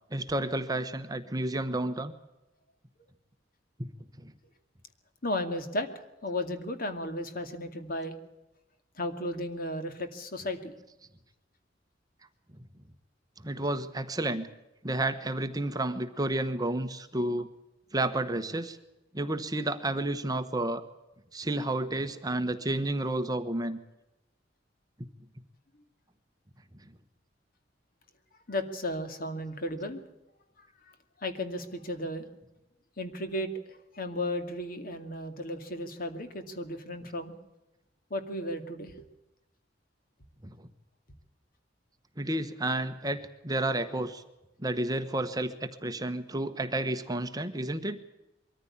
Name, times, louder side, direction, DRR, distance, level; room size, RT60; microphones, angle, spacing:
voice 1, 0.1-2.1 3.8-3.9 4.2-4.3 13.4-14.5 14.8-17.5 17.9-18.8 19.1-20.8 21.3-23.8 25.0-25.1 40.4-40.5 42.2-44.2 44.6-48.0, right 1 dB, 20° right, 9 dB, 1.1 m, -31 dB
voice 2, 5.2-5.9 6.2-8.1 9.0-10.7 28.5-30.0 31.2-32.3 33.0-33.5 33.9-37.3 38.1-39.0, left 1 dB, 55° left, 8 dB, 2.3 m, -34 dB
22.5 x 14.5 x 8.6 m, 0.97 s
head